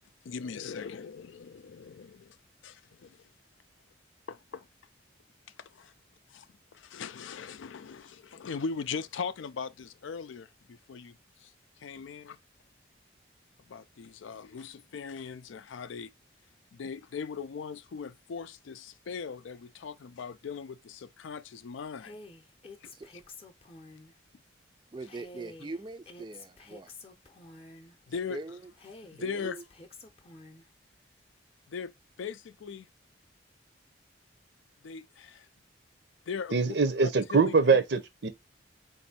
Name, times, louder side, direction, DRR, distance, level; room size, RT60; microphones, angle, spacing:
voice 1, 0.2-2.4 2.6-3.2 4.3-4.7 5.6-5.9 6.3-6.5 6.7-11.5 11.8-12.4 13.7-16.1 16.7-22.2 22.8-22.9 28.1-28.4 29.1-29.6 31.7-31.9 32.2-32.9 34.8-35.5 36.3-36.8 37.0-37.5, left 6 dB, 85° left, 0.4 m, -39 dB
Female speech woman speaking, 22.0-24.1 25.1-28.0 28.8-30.7, left 2 dB, 30° left, 0.6 m, -49 dB
voice 2, 24.9-26.9 28.3-28.6 29.2-29.6, right 2 dB, 25° right, 0.4 m, -41 dB
voice 3, 36.5-38.3, right 4 dB, 60° right, 0.6 m, -23 dB
4.2 x 2.6 x 4.1 m
head